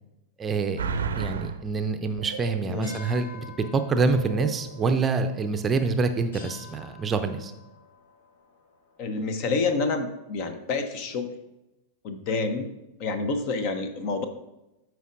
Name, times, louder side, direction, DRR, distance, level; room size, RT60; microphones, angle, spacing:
voice 1, 0.4-0.9 1.2-7.5, right 4 dB, 20° right, 7 dB, 0.6 m, -26 dB
sound 1, 0.8-1.7 2.2-3.0 3.4-3.5 4.1-5.0 5.4-5.5, right 6 dB, 65° right, 0.5 m, -33 dB
sound 2, 2.8-9.7, left 6 dB, 65° left, 2.1 m, -49 dB
voice 2, 9.0-11.3 12.0-12.7 13.0-14.2, left 3 dB, 45° left, 9 dB, 0.8 m, -28 dB
13.0 x 4.6 x 2.6 m, 0.93 s
figure-of-eight pair, 90°, 0 cm